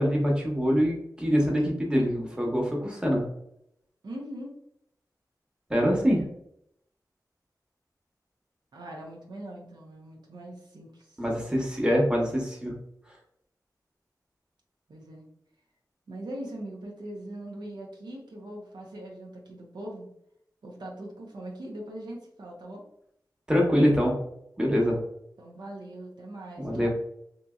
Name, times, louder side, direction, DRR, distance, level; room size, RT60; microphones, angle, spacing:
voice 1, 0.0-3.2 5.7-6.3 11.2-12.7 23.5-24.2 24.6-25.0 26.6-26.9, equal, 10° right, -1 dB, 0.9 m, -24 dB
voice 2, 4.0-4.5 8.7-11.2 14.9-15.3 16.1-20.1 20.6-22.8 25.4-26.9, right 1 dB, 85° right, -1 dB, 0.6 m, -41 dB
2.8 x 2.6 x 2.3 m, 0.74 s
wide cardioid pair, 50°, 7 cm